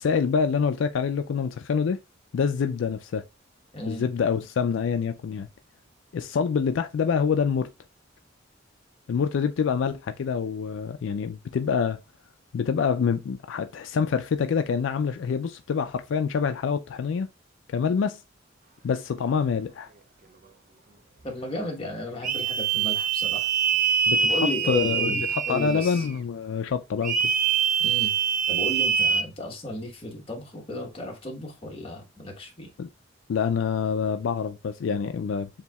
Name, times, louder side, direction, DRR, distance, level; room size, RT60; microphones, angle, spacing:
voice 1, 0.0-2.0 2.3-3.2 3.9-5.5 6.1-7.7 9.1-12.0 12.5-17.3 17.7-18.2 18.8-19.9 24.1-24.4 24.6-27.2 32.8-32.9 33.3-35.5, left 6 dB, 75° left, 0.3 m, -26 dB
voice 2, 3.7-4.0 21.2-23.5 24.2-26.1 27.8-28.1 28.5-32.7, left 1 dB, 30° left, 1.1 m, -34 dB
sound 1, 22.2-26.1 27.0-29.2, right 6 dB, 45° right, 0.5 m, -24 dB
6.9 x 2.7 x 2.2 m
head